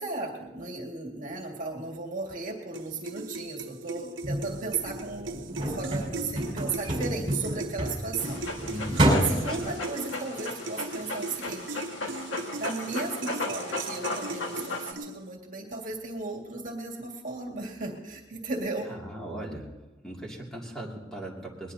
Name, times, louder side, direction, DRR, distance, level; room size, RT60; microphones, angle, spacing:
voice 1, 0.0-8.4 8.9-9.0 9.3-11.8 12.1-12.3 12.6-18.9, right 3 dB, 45° right, 1 dB, 2.1 m, -35 dB
sound 1, 2.7-15.4, right 3 dB, 75° right, 0.9 m, -39 dB
sound 2, 4.2-9.7, right 1 dB, 30° right, 5.4 m, -29 dB
Dog, 8.2-14.9, left 2 dB, 75° left, 1.8 m, -36 dB
voice 2, 8.7-9.1 9.5-9.7 18.9-19.7 20.0-21.7, right 1 dB, 5° left, -3 dB, 2.5 m, -38 dB
20.5 x 20.0 x 2.8 m, 1.1 s
head